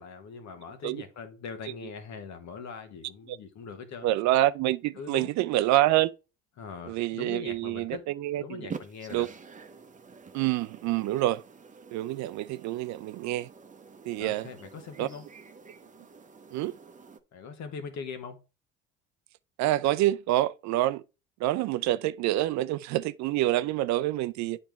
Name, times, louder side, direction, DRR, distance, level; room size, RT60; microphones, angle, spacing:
voice 1, 0.0-4.1 5.0-5.3 6.6-8.1 8.3-9.3 14.2-15.2 17.3-18.4, left 5 dB, 55° left, 1.5 m, -41 dB
voice 2, 4.0-6.1 6.9-8.6 9.1-9.3 10.3-11.4 11.9-13.5 14.1-14.5 15.0-15.1 16.5-16.7 19.6-21.0 21.4-24.6, right 15 dB, 60° right, 0.5 m, -27 dB
sound 1, 8.7-17.2, right 5 dB, 25° right, 0.9 m, -47 dB
8.6 x 4.4 x 3.5 m
hypercardioid pair, 70°, 33 cm